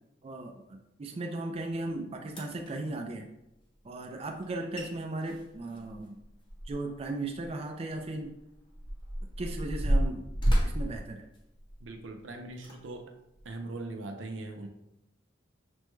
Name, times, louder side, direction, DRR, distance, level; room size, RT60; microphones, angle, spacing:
voice 1, 0.2-3.3 3.8-6.2 6.7-8.4 9.4-10.3 10.6-11.2, right 2 dB, 30° right, 3 dB, 0.4 m, -36 dB
sound 1, 2.3-2.7 4.4-4.5 4.7-4.9 5.2-7.0 7.3-7.5 8.2-11.9 12.5-12.8 13.4-13.5, equal, 25° left, 0.8 m, -30 dB
voice 2, 11.8-13.1 13.4-14.7, right 2 dB, 85° right, 4 dB, 0.6 m, -40 dB
6.0 x 2.2 x 3.1 m, 0.86 s
head